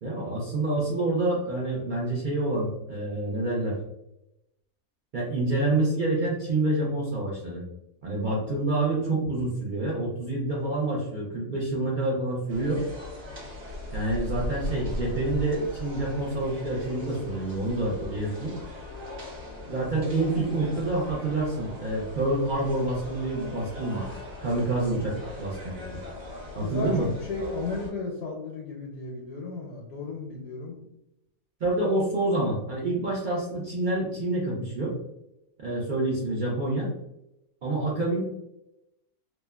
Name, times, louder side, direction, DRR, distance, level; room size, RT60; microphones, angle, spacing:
voice 1, 0.0-3.7 5.1-7.6 8.0-12.8 13.9-18.5 19.7-24.0 24.4-26.0 26.5-27.1 31.6-34.9 35.6-36.9 37.6-38.2, right 2 dB, 80° right, -4 dB, 0.4 m, -27 dB
sound 1, 12.5-27.9, left 2 dB, 55° right, 1.2 m, -39 dB
voice 2, 26.6-30.8, left 3 dB, 75° left, -1 dB, 1.0 m, -34 dB
3.0 x 2.1 x 2.2 m, 0.86 s
omnidirectional pair, 1.5 m